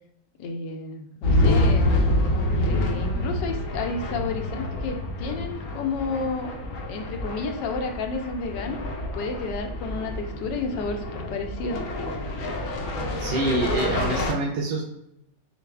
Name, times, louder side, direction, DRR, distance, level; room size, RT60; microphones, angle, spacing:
voice 1, 0.4-1.9 2.6-6.5 6.9-8.8 9.1-11.8, left 4 dB, 80° left, 5 dB, 1.3 m, -31 dB
sound 1, 1.2-14.3, left 1 dB, 65° left, 0.9 m, -27 dB
voice 2, 13.2-14.8, right 2 dB, 90° right, -2 dB, 1.4 m, -26 dB
6.5 x 2.4 x 2.3 m, 0.79 s
omnidirectional pair, 1.9 m